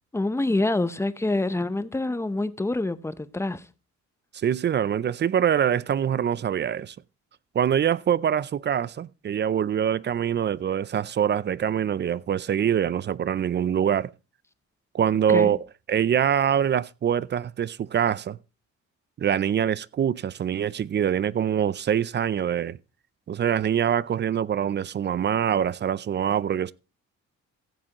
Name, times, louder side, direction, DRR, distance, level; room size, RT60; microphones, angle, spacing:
voice 1, 0.1-3.6 15.3-15.5, left 2 dB, 10° left, 0.7 m, -26 dB
voice 2, 4.3-7.0 7.5-14.1 14.9-15.6 15.9-18.4 19.2-22.8 23.3-26.7, right 9 dB, 35° right, 0.4 m, -24 dB
15.5 x 7.4 x 2.9 m
cardioid pair, 90°, 30 cm